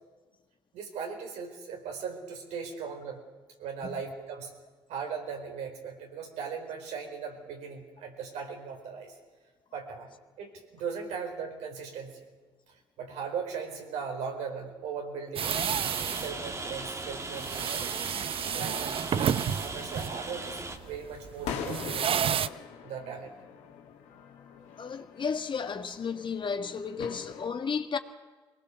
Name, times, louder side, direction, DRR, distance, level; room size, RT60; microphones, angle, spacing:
voice 1, 0.7-3.2 3.6-4.5 4.9-9.1 9.7-10.1 10.4-12.2 13.0-15.6 15.9-17.9 18.5-19.0 19.3-22.3 22.8-23.3, right 6 dB, 70° right, 4.3 m, -38 dB
Rain, 15.4-20.8, right 2 dB, 25° right, 2.2 m, -39 dB
sound 1, 15.4-22.5, right 8 dB, 50° right, 0.7 m, -31 dB
sound 2, 18.3-27.5, left 7 dB, 70° left, 2.2 m, -44 dB
voice 2, 24.8-28.0, left 6 dB, 45° left, 1.7 m, -33 dB
23.0 x 19.5 x 6.9 m
hypercardioid pair, 55°, 12 cm